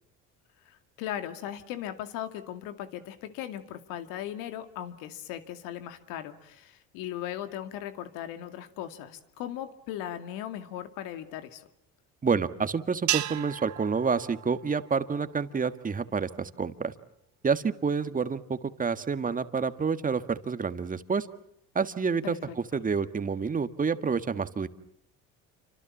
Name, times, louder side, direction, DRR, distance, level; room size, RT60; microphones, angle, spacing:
voice 1, 0.7-11.7 22.2-22.8, left 11 dB, 85° left, 9 dB, 2.4 m, -38 dB
voice 2, 12.2-16.9 17.4-21.3 21.7-22.4 22.7-24.7, right 5 dB, 25° right, 11 dB, 1.7 m, -28 dB
sound 1, 13.1-15.5, right 15 dB, 65° right, 1.3 m, -34 dB
28.0 x 25.5 x 7.3 m, 0.76 s
cardioid pair, 100°, 33 cm